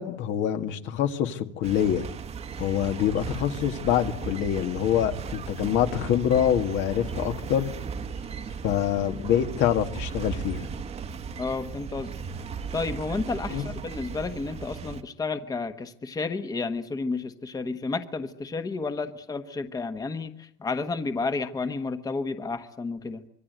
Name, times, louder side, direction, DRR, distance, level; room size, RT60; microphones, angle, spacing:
voice 1, 0.0-2.1 2.6-7.7 8.6-10.7 13.5-13.6, left 10 dB, 65° left, 2.0 m, -25 dB
sound 1, 1.6-15.0, right 6 dB, 30° right, 1.2 m, -36 dB
voice 2, 11.4-12.1 12.7-23.2, left 4 dB, 15° left, 1.2 m, -31 dB
26.5 x 23.0 x 8.0 m
cardioid pair, 160°, 21 cm